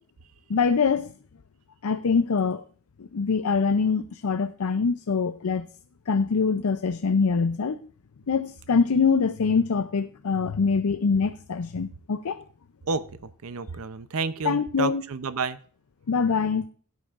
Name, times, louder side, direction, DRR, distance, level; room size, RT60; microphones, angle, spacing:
voice 1, 0.5-1.1 1.8-2.6 3.0-5.7 6.1-7.8 8.3-12.4 14.4-15.0 16.1-16.6, left 5 dB, 85° left, 0.5 m, -24 dB
voice 2, 12.9-15.6, right 4 dB, 75° right, 0.6 m, -30 dB
17.0 x 8.2 x 2.5 m
head